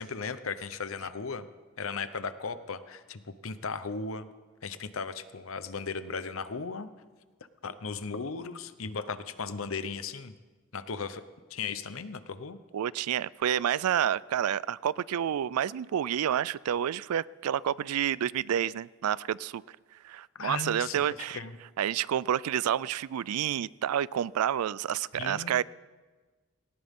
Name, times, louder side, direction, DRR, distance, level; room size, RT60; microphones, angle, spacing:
voice 1, 0.0-1.5 1.8-4.3 4.6-6.9 7.6-10.3 10.7-11.2 11.5-12.6 20.3-21.6 25.1-25.5, left 5 dB, 65° left, 0.8 m, -36 dB
voice 2, 12.7-19.6 20.0-21.4 21.8-25.6, right 9 dB, 85° right, 0.3 m, -29 dB
18.5 x 18.0 x 3.7 m
head